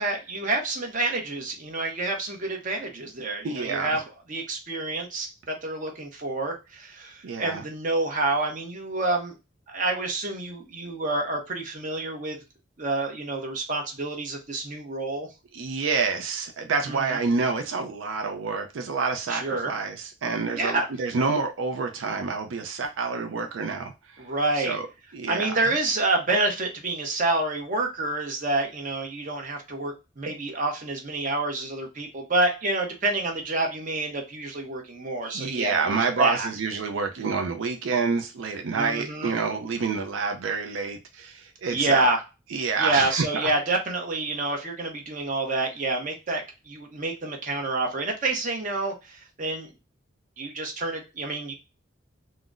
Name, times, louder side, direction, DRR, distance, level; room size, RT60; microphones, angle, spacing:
voice 1, 0.0-4.0 4.3-9.4 9.7-12.4 12.8-15.3 16.9-17.2 19.3-19.7 20.5-20.9 24.2-24.7 25.3-36.5 38.7-39.3 41.7-42.2 42.8-49.7 50.4-51.5, right 2 dB, 40° right, 2 dB, 0.8 m, -28 dB
voice 2, 3.4-4.0 7.2-7.6 15.5-24.2 24.6-24.9 25.1-25.6 35.2-42.1 42.5-43.5, right 4 dB, 85° right, 5 dB, 0.4 m, -28 dB
3.8 x 2.0 x 2.4 m, 0.27 s
head